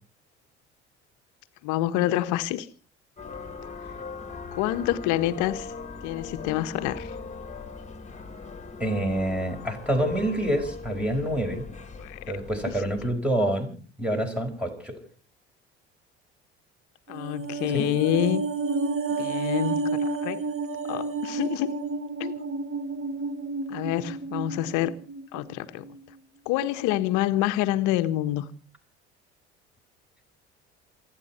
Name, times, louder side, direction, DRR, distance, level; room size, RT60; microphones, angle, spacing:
voice 1, 1.6-2.7 4.5-5.7 6.0-7.1 12.0-12.4 17.1-18.4 19.2-20.4 20.8-21.8 22.2-22.5 23.7-24.9 25.3-25.8 26.4-28.4, left 14 dB, 65° left, 1.5 m, -27 dB
sound 1, 3.2-13.1, left 4 dB, 20° left, 3.0 m, -40 dB
voice 2, 8.8-11.7 12.3-15.0 17.7-17.9, right 1 dB, 5° right, 5.5 m, -27 dB
sound 2, 17.1-25.5 25.8-26.0, right 3 dB, 40° right, 2.6 m, -30 dB
28.5 x 9.7 x 4.5 m
hypercardioid pair, 65°, 33 cm